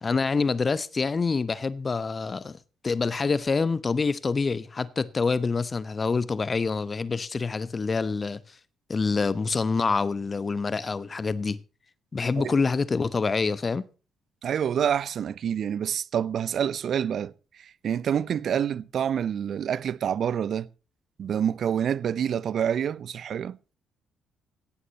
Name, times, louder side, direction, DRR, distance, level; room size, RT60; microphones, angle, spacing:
voice 1, 0.0-2.6 2.8-8.6 8.9-11.6 12.1-13.9, left 4 dB, 35° left, 0.9 m, -26 dB
voice 2, 14.4-17.3 17.6-20.7 21.2-23.6, right 8 dB, 50° right, 0.6 m, -27 dB
17.0 x 14.5 x 3.0 m
figure-of-eight pair, 45°, 0 cm